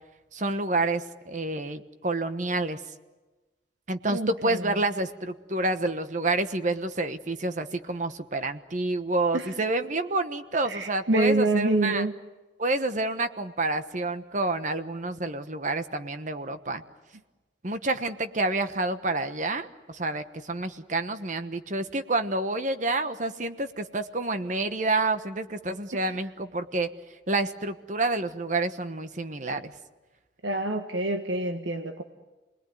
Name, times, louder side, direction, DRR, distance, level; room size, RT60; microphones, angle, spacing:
voice 1, 0.3-2.8 3.9-12.0 12.6-16.8 17.6-26.9 27.3-29.7, right 2 dB, 45° right, 9 dB, 1.2 m, -28 dB
voice 2, 4.1-4.7 9.3-9.5 10.6-12.1 25.9-26.2 30.4-32.0, right 2 dB, 85° right, 5 dB, 1.5 m, -27 dB
30.0 x 21.0 x 9.5 m, 1.2 s
head